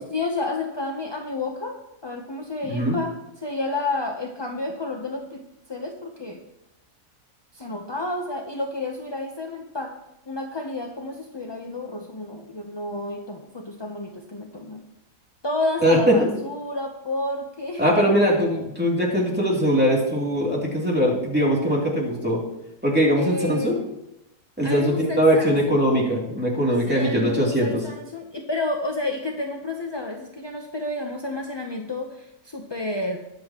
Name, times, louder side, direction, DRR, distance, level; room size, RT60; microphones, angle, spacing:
voice 1, 0.1-5.4 5.7-6.4 7.5-9.9 10.3-14.8 15.4-17.8 23.1-23.8 24.6-25.8 26.9-33.2, left 2 dB, 25° left, 2 dB, 0.5 m, -30 dB
voice 2, 15.8-16.1 17.8-22.4 22.8-23.8 24.6-27.7, equal, 5° right, -4 dB, 2.8 m, -21 dB
22.0 x 7.8 x 3.0 m, 0.88 s
omnidirectional pair, 1.6 m